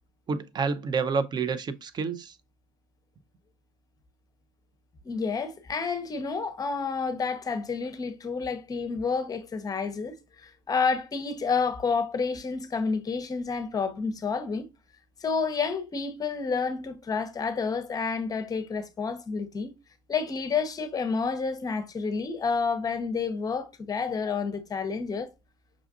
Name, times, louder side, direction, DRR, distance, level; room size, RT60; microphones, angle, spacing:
voice 1, 0.3-2.3, right 5 dB, 30° right, 0.5 m, -29 dB
voice 2, 5.0-14.7 15.2-19.7 20.1-25.3, left 5 dB, 25° left, 0.7 m, -29 dB
6.0 x 2.4 x 2.4 m
supercardioid pair, 110°, 15 cm